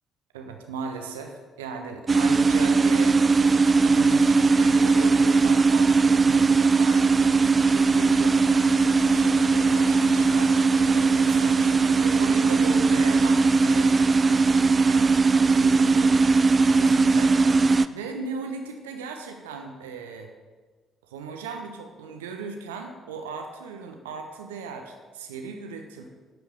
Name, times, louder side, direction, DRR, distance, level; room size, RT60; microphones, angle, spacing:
voice 1, 0.3-3.5 3.8-8.8 9.1-15.2 15.5-16.2 16.7-17.3 17.9-20.3 21.0-26.0, right 4 dB, 75° right, 4 dB, 1.0 m, -37 dB
sound 1, 2.1-17.9, right 4 dB, 30° right, 0.4 m, -19 dB
11.0 x 5.1 x 8.1 m, 1.4 s
figure-of-eight pair, 45°, 0 cm